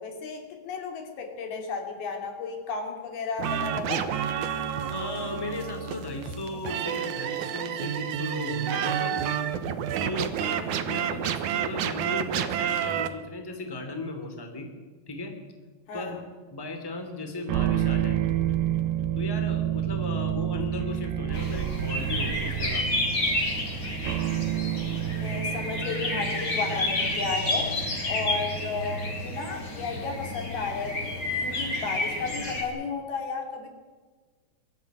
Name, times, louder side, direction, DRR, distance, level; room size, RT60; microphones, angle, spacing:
voice 1, 0.0-4.1 10.5-10.8 15.9-16.1 25.1-27.7 28.1-33.7, left 5 dB, 80° left, 3 dB, 4.8 m, -33 dB
sound 1, 3.4-13.1, right 9 dB, 65° right, 2.2 m, -30 dB
voice 2, 4.9-9.2 10.0-14.7 15.1-15.4 15.9-16.2 16.5-18.2 19.2-23.0, left 2 dB, 5° left, 5 dB, 2.3 m, -36 dB
sound 2, 17.5-28.9, right 11 dB, 80° right, 2.9 m, -30 dB
sound 3, 21.3-32.6, left 1 dB, 30° left, 3.8 m, -30 dB
22.5 x 13.5 x 9.4 m, 1.4 s
omnidirectional pair, 4.3 m